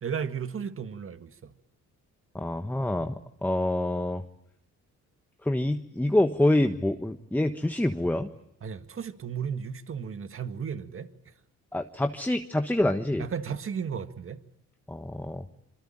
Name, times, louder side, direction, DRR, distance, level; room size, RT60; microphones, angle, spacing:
voice 1, 0.0-1.5 8.6-11.1 13.2-14.4, right 7 dB, 45° right, 1.9 m, -34 dB
voice 2, 2.3-3.1 3.4-4.2 5.4-8.3 11.7-13.3 14.9-15.4, left 1 dB, 5° left, 1.4 m, -26 dB
26.5 x 24.5 x 8.9 m
cardioid pair, 90°, 30 cm